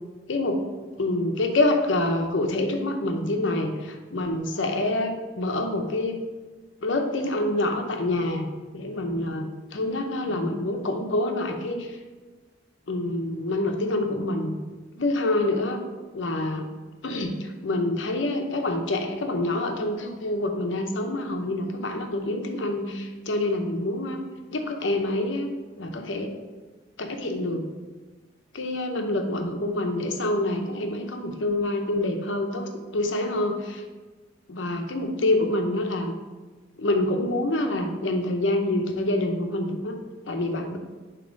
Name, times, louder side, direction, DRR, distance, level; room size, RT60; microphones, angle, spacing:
voice 1, 0.3-0.6 1.0-6.2 6.8-8.5 8.7-12.0 12.9-14.6 15.0-15.8 16.1-16.7 17.0-24.2 24.5-25.5 25.8-26.3 27.0-27.6 28.5-33.8 34.5-36.1 36.8-40.0 40.3-40.8, left 1 dB, 80° left, 4 dB, 0.8 m, -26 dB
6.9 x 3.0 x 5.1 m, 1.3 s
head